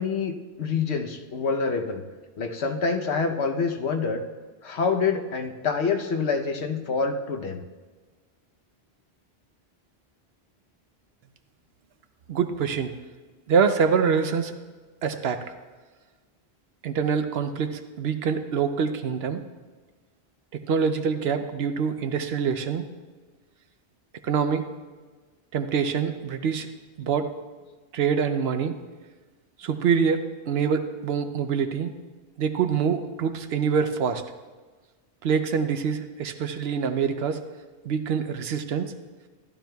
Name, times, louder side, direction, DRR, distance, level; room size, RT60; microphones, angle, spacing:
voice 1, 0.0-2.0 2.4-4.2 4.6-7.6, left 5 dB, 85° left, 4 dB, 1.1 m, -26 dB
voice 2, 12.3-12.9 13.5-14.5 15.0-15.5 16.8-19.4 20.7-22.8 24.2-24.7 25.5-26.7 27.0-27.3 27.9-28.8 29.6-31.9 32.4-34.2 35.2-37.4 37.8-38.9, right 6 dB, 70° right, 8 dB, 0.9 m, -25 dB
14.5 x 11.5 x 2.3 m, 1.4 s
omnidirectional pair, 1.1 m